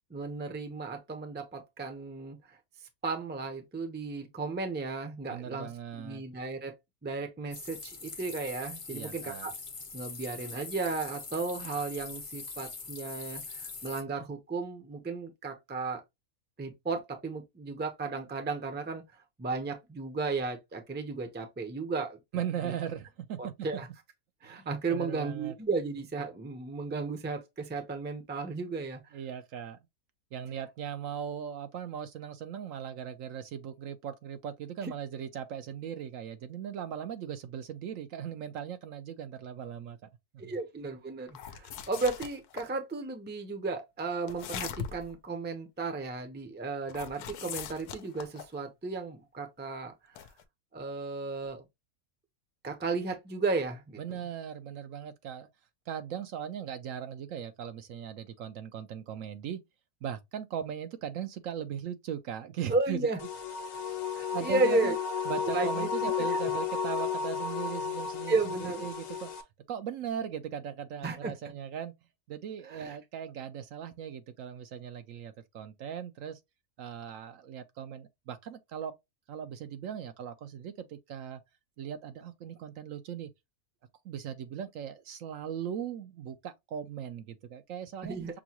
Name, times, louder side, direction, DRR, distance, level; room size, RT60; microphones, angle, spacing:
voice 1, 0.1-2.6 3.0-5.7 6.0-6.7 7.0-9.5 9.9-16.0 16.6-19.0 19.4-22.2 22.6-22.7 23.4-23.9 24.4-29.0 34.8-34.9 40.4-50.2 50.7-51.6 52.6-54.0 62.7-63.2 64.1-64.9 65.4-66.1 68.3-68.8 71.0-71.3 72.6-73.0 88.0-88.3, right 3 dB, 10° right, 0.5 m, -34 dB
voice 2, 5.3-6.2 8.9-9.5 22.3-23.7 24.5-25.5 29.1-29.8 30.3-40.1 40.4-40.5 54.0-55.5 55.9-59.6 60.0-63.0 64.3-64.9 65.3-69.3 69.7-72.0 72.3-76.4 76.8-78.9 79.3-81.4 81.8-83.3 84.0-88.4, right 9 dB, 70° right, 0.9 m, -39 dB
sound 1, 7.5-14.0, left 4 dB, 40° left, 0.5 m, -43 dB
sound 2, 41.3-42.7 44.3-45.1 46.9-48.6 50.2-50.4, left 8 dB, 90° left, 1.1 m, -40 dB
sound 3, 63.2-69.4, left 6 dB, 65° left, 1.1 m, -33 dB
6.1 x 2.2 x 2.8 m
omnidirectional pair, 1.6 m